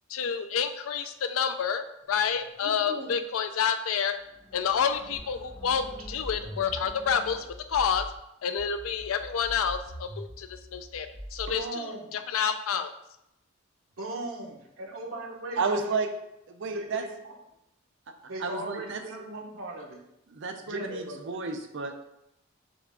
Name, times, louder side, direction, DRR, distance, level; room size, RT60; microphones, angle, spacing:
voice 1, 0.1-4.1 4.5-8.0 8.4-11.9 12.1-12.9, left 7 dB, 80° left, 9 dB, 0.4 m, -29 dB
sound 1, 2.0-2.9 4.1-7.5, equal, 5° left, 0.5 m, -49 dB
voice 2, 2.6-3.1 11.5-12.2 14.0-16.0 16.7-17.3 18.2-20.0 20.5-21.2, right 1 dB, 85° right, 0 dB, 1.0 m, -38 dB
sound 2, 5.1-8.2 8.6-11.6, equal, 35° right, 1.0 m, -43 dB
voice 3, 15.6-16.1 16.5-17.0 18.4-19.0 20.3-22.1, right 4 dB, 60° right, 5 dB, 0.5 m, -31 dB
5.9 x 2.5 x 3.5 m, 0.82 s
head